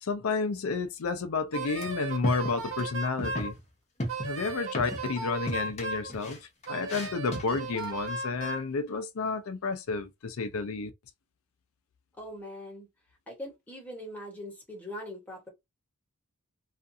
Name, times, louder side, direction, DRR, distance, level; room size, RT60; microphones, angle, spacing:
voice 1, 0.0-3.6 4.2-10.9, left 4 dB, 70° left, 0.5 m, -31 dB
Wind instrument woodwind instrument, 1.5-3.5 4.1-6.1 6.7-8.7, right 3 dB, 65° right, 0.9 m, -36 dB
sound 1, 1.8-1.9 2.2-2.9 3.2-3.6 4.0-5.2 5.5-7.9, equal, 30° left, 0.8 m, -36 dB
voice 2, 12.2-12.9 13.3-15.5, left 1 dB, 10° left, 1.1 m, -41 dB
2.5 x 2.4 x 2.6 m
head